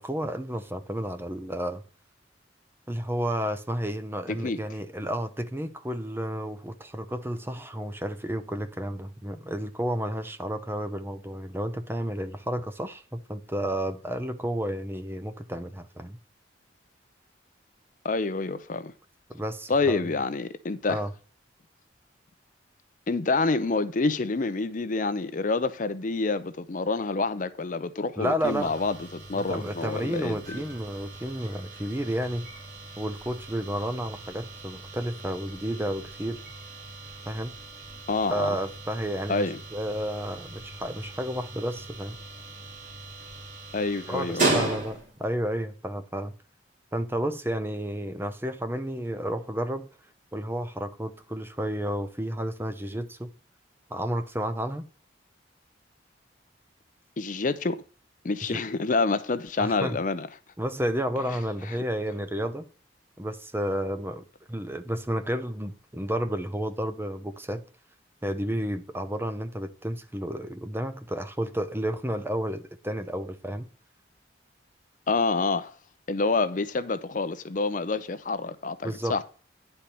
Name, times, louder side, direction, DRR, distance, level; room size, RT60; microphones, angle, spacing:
voice 1, 0.0-1.8 2.9-16.2 19.3-20.1 20.9-21.1 28.2-28.7 29.5-32.5 33.0-36.4 37.3-37.6 38.3-39.5 39.7-42.2 44.1-46.3 46.9-49.9 50.3-53.3 53.9-54.9 58.5-58.6 59.6-60.0 60.6-62.7 63.2-67.6 68.2-73.7 78.8-79.2, equal, 10° right, 0.7 m, -31 dB
voice 2, 4.3-4.6 18.0-18.9 19.7-21.0 23.1-30.6 38.1-38.6 39.3-39.6 43.7-44.7 57.2-57.8 58.2-60.3 61.7-61.8 75.1-75.7 76.1-79.2, left 3 dB, 45° left, 0.5 m, -27 dB
sound 1, 28.4-45.3, right 2 dB, 45° right, 3.9 m, -37 dB
10.0 x 4.4 x 6.7 m
head